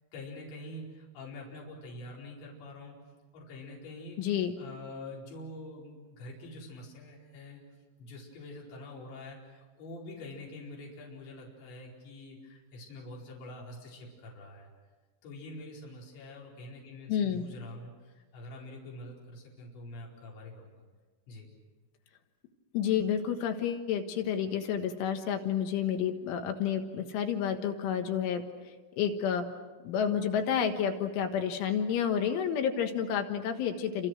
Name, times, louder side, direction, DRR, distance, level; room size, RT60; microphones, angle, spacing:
voice 1, 0.1-3.0 3.3-4.2 4.6-7.6 8.0-14.7 15.2-20.8 21.3-21.5, left 2 dB, 65° left, -3 dB, 6.9 m, -45 dB
voice 2, 4.2-4.6 17.1-17.5 22.7-28.4 29.0-29.5 29.8-34.1, left 8 dB, 80° left, 6 dB, 3.8 m, -30 dB
29.0 x 27.0 x 6.3 m, 1.3 s
omnidirectional pair, 5.6 m